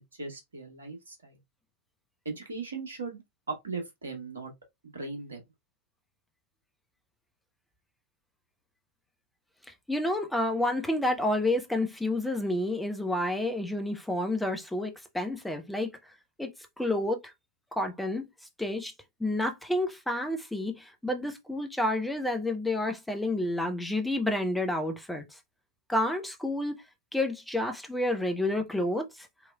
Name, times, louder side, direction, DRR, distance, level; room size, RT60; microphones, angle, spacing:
voice 1, 0.1-1.4 2.2-3.2 3.5-4.5 4.8-5.4, right 4 dB, 70° right, 1.2 m, -38 dB
voice 2, 9.9-15.9 16.4-16.5 16.8-17.3 17.7-18.3 18.6-18.9 19.2-25.4 25.9-26.8 27.1-29.3, left 1 dB, 5° left, 0.7 m, -29 dB
3.1 x 2.8 x 2.2 m
figure-of-eight pair, 90°, 0 cm